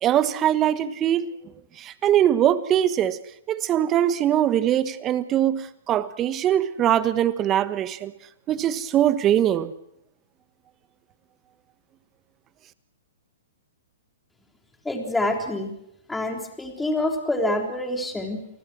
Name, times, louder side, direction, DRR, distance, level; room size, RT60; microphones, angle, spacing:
voice 1, 0.0-1.3 1.8-3.2 3.5-8.1 8.5-9.7, right 11 dB, 25° right, 14 dB, 1.3 m, -22 dB
voice 2, 14.8-15.7 16.1-18.5, left 1 dB, 5° left, 3 dB, 3.8 m, -26 dB
28.5 x 20.0 x 6.3 m, 0.81 s
hypercardioid pair, 125°, 0 cm